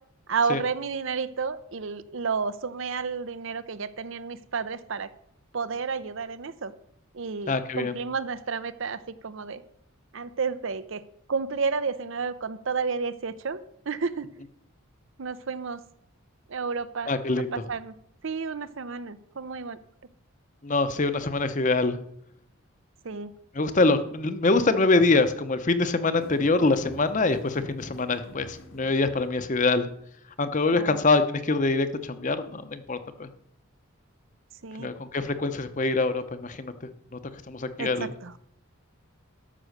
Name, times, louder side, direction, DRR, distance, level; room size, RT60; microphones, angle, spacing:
voice 1, 0.3-5.1 5.5-6.7 7.1-9.6 10.1-11.0 11.3-13.6 13.9-14.3 15.2-15.8 16.5-18.0 18.2-19.8 23.0-23.3 30.7-31.0 34.6-34.9 37.8-38.3, right 5 dB, 60° right, 14 dB, 0.6 m, -31 dB
voice 2, 7.5-7.9 17.1-17.5 20.6-22.0 23.5-29.9 30.4-33.3 34.8-36.7 37.1-37.2 37.5-38.1, left 3 dB, 35° left, 11 dB, 0.7 m, -24 dB
sound 1, 26.2-29.7, left 1 dB, 70° left, 1.3 m, -46 dB
12.5 x 6.2 x 6.6 m, 0.71 s
head